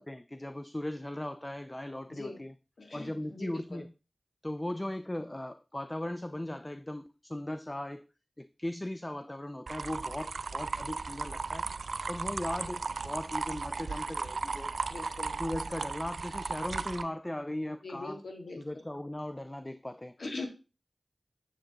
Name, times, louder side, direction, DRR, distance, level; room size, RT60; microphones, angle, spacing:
voice 1, 0.0-2.6 2.9-3.9 4.4-8.0 8.4-11.7 12.1-15.1 15.4-18.2 18.6-20.2, left 1 dB, 25° left, 0.4 m, -38 dB
voice 2, 2.1-2.4 2.8-3.8 14.9-15.4 17.8-18.6 20.2-20.5, left 2 dB, 85° left, 1.7 m, -41 dB
sound 1, 9.7-17.0, right 4 dB, 90° right, 0.3 m, -36 dB
7.6 x 6.8 x 2.8 m
cardioid pair, 40°, 0 cm